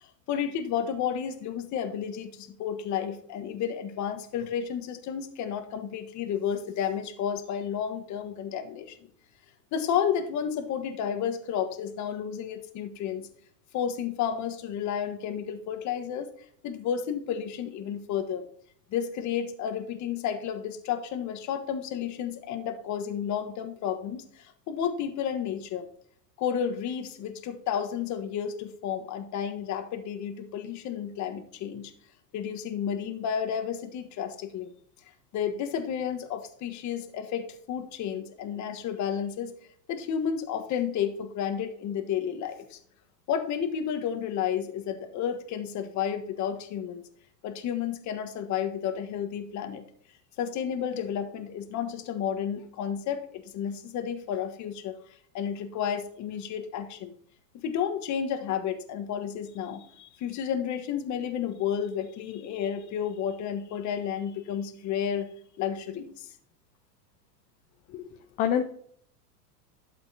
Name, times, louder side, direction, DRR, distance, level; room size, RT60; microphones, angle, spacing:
voice 1, 0.0-9.0 9.7-13.3 13.7-16.3 16.6-18.5 18.9-25.9 26.4-31.9 32.3-34.7 35.3-39.5 39.9-42.8 43.3-47.0 47.4-49.8 50.4-55.0 55.3-57.1 57.6-65.3 65.6-66.3, left 8 dB, 35° left, 8 dB, 1.3 m, -31 dB
voice 2, 67.9-68.6, left 9 dB, 20° left, 6 dB, 0.3 m, -28 dB
12.0 x 7.4 x 2.8 m, 0.62 s
hypercardioid pair, 105°, 48 cm